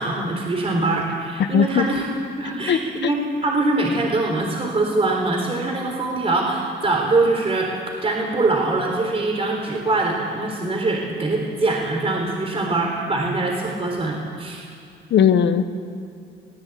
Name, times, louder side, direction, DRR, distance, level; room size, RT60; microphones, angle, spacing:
voice 1, 0.0-2.0 2.4-14.6, right 2 dB, 30° right, 0 dB, 3.9 m, -23 dB
voice 2, 1.5-1.9 2.7-3.1 15.1-15.7, left 8 dB, 65° left, 10 dB, 1.3 m, -18 dB
20.0 x 18.0 x 8.6 m, 2.5 s
cardioid pair, 90°, 20 cm